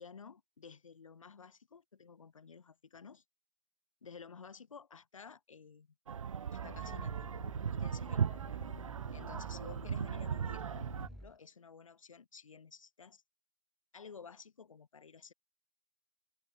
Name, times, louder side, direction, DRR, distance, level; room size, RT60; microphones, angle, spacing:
voice 1, 0.0-3.2 4.0-5.9 6.5-7.3 7.8-8.7 9.1-10.7 11.1-13.2 13.9-15.3, left 6 dB, 85° left, 2.8 m, -53 dB
sound 1, 6.1-11.1, right 7 dB, 80° right, 1.2 m, -37 dB
Growling, 6.4-11.4, equal, ahead, 0.8 m, -51 dB
hypercardioid pair, 135°, 17 cm